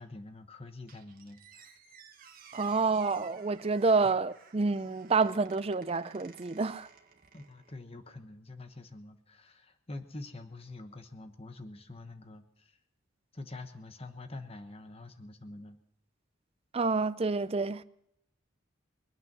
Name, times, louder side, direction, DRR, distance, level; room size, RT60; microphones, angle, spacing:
voice 1, 0.0-1.8 4.0-4.1 7.3-12.8 13.3-15.8, left 2 dB, 30° left, 1.1 m, -46 dB
Squeak, 0.9-7.8, right 6 dB, 45° right, 1.5 m, -56 dB
voice 2, 2.5-6.9 16.7-17.8, right 4 dB, 30° right, 0.5 m, -28 dB
23.5 x 9.1 x 6.0 m
head